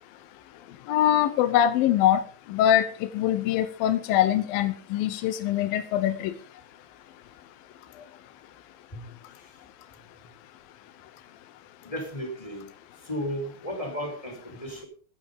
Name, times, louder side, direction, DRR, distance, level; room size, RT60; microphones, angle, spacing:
voice 1, 0.9-2.2 2.5-6.3, left 11 dB, 75° left, 11 dB, 2.5 m, -23 dB
voice 2, 11.8-12.7 13.0-14.9, equal, 10° left, 1 dB, 4.2 m, -34 dB
15.0 x 10.5 x 5.4 m, 0.41 s
omnidirectional pair, 4.4 m